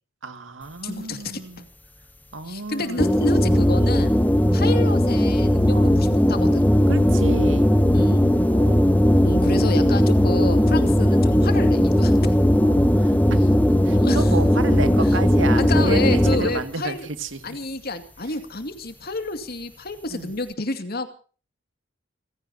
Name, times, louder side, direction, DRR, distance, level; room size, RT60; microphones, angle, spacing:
voice 1, 0.2-1.7 2.3-3.0 5.7-6.0 6.9-7.7 8.5-8.9 12.6-17.6 20.1-20.3, right 3 dB, 85° right, 9 dB, 2.2 m, -32 dB
voice 2, 0.8-1.4 2.5-4.1 4.5-6.6 7.9-8.3 9.2-12.4 13.9-14.3 15.6-17.1 17.4-21.1, left 2 dB, 55° left, 8 dB, 2.4 m, -29 dB
sound 1, 3.0-16.6, equal, 10° left, 1.0 m, -18 dB
30.0 x 16.5 x 2.9 m, 0.39 s
head